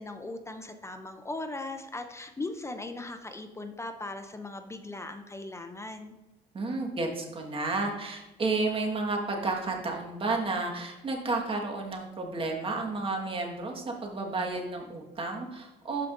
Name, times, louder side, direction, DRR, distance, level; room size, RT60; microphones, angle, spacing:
voice 1, 0.0-6.2, left 2 dB, 15° left, 7 dB, 0.5 m, -39 dB
voice 2, 6.5-16.1, right 3 dB, 30° right, 1 dB, 1.6 m, -31 dB
12.5 x 4.8 x 2.6 m, 1.0 s
cardioid pair, 110°, 17 cm